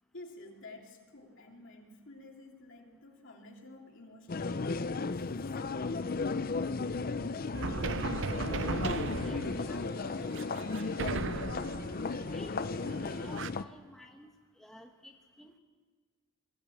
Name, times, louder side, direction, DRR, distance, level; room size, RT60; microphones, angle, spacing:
voice 1, 0.1-5.6 7.7-7.8, left 2 dB, 55° left, 1 dB, 3.0 m, -51 dB
sound 1, 4.3-13.6, left 4 dB, 40° left, 0.5 m, -35 dB
sound 2, 7.5-13.5, right 4 dB, 55° right, 0.5 m, -38 dB
voice 2, 8.2-8.9 9.3-10.5 10.8-11.6 12.3-12.6 13.2-14.3 14.6-15.6, equal, ahead, 2 dB, 1.1 m, -54 dB
22.5 x 15.5 x 8.5 m, 1.5 s
head